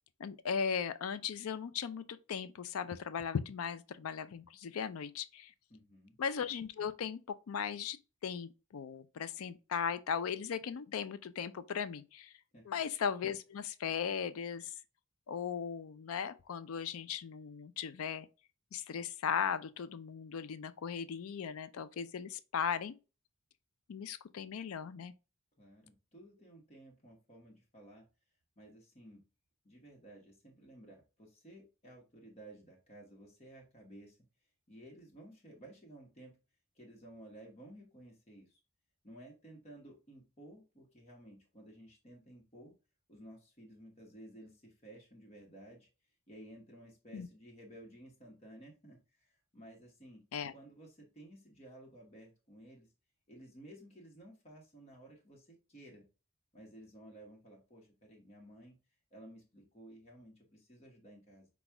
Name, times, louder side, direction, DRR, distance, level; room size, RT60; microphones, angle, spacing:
voice 1, 0.2-5.5 6.2-8.0 8.2-12.3 12.7-14.7 15.3-18.3 18.7-23.0 23.9-25.1 47.1-47.3 50.3-50.5, left 7 dB, 85° left, 0.4 m, -37 dB
voice 2, 5.7-6.2 12.5-12.8 25.6-28.1 28.6-29.2 29.6-34.2 34.7-36.4 36.7-38.6 39.0-42.7 43.1-45.9 46.3-50.2 50.5-52.9 53.3-56.0 56.5-58.8 59.1-61.5, right 1 dB, 30° left, 1.1 m, -55 dB
6.0 x 2.3 x 3.4 m
head